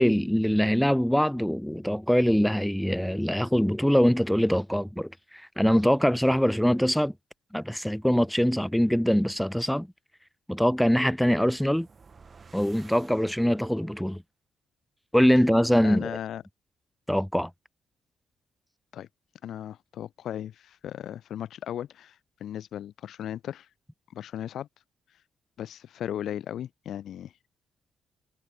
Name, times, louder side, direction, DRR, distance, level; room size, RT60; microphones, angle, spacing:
voice 1, 0.0-7.1 7.5-9.9 10.5-11.9 12.5-14.2 15.1-16.2 17.1-17.5, equal, ahead, 1.1 m, -23 dB
sound 1, 11.1-13.9, right 5 dB, 35° right, 5.3 m, -54 dB
voice 2, 15.8-16.4 18.9-19.1 19.4-23.7 24.1-24.7 25.6-27.3, left 10 dB, 70° left, 2.5 m, -36 dB
cardioid pair, 90°, 0 cm